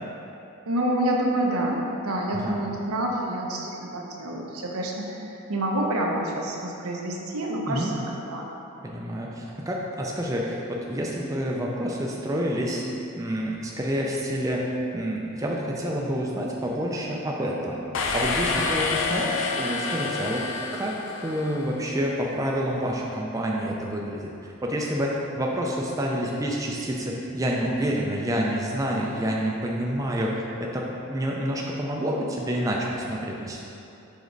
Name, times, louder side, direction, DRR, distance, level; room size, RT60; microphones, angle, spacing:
voice 1, 0.7-8.5, right 1 dB, 90° right, -1 dB, 0.8 m, -28 dB
voice 2, 8.8-12.8 13.2-24.3 24.6-33.7, equal, 15° right, -2 dB, 0.4 m, -28 dB
sound 1, 17.9-21.7, left 3 dB, 65° left, 0.5 m, -28 dB
5.1 x 4.9 x 3.9 m, 2.8 s
head